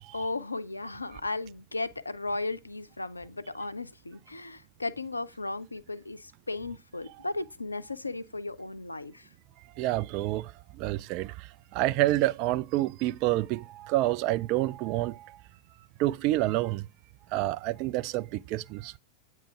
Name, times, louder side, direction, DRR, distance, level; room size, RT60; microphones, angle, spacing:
voice 1, 0.1-9.3, left 2 dB, 80° left, 0.4 m, -35 dB
voice 2, 9.8-15.4 16.0-16.9 17.3-19.0, right 16 dB, 45° right, 0.3 m, -28 dB
8.7 x 3.0 x 5.7 m
figure-of-eight pair, 90°, 0 cm